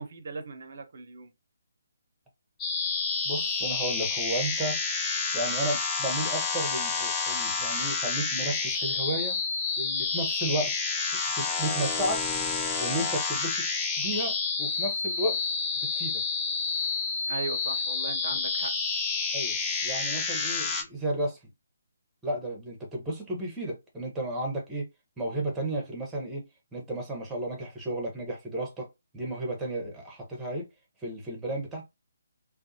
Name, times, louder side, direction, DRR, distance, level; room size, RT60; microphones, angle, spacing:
voice 1, 0.0-1.3 17.3-18.7, right 4 dB, 50° right, 0.5 m, -38 dB
sound 1, 2.6-20.8, left 4 dB, 15° left, 0.5 m, -29 dB
voice 2, 3.2-4.8 5.3-9.4 9.8-10.7 11.4-12.3 12.8-13.7 14.0-15.4 15.8-16.2 18.3-18.4 19.3-19.6 19.8-21.4 22.2-24.9 25.2-26.4 26.7-28.9 29.1-30.7 31.0-31.8, right 1 dB, 10° right, 0.9 m, -33 dB
2.5 x 2.2 x 2.7 m
figure-of-eight pair, 140°, 0 cm